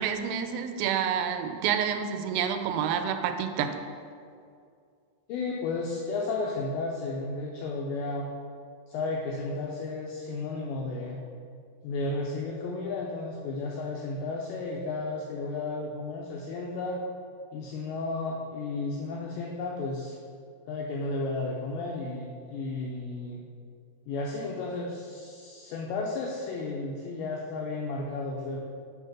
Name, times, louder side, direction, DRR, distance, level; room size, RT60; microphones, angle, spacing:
voice 1, 0.0-3.7, right 8 dB, 90° right, 7 dB, 3.2 m, -28 dB
voice 2, 5.3-8.3 8.9-11.2 11.8-17.0 17.5-20.2 20.7-23.4 24.1-28.6, left 3 dB, 90° left, -1 dB, 2.5 m, -33 dB
7.9 x 3.4 x 5.8 m, 2.3 s
omnidirectional pair, 5.7 m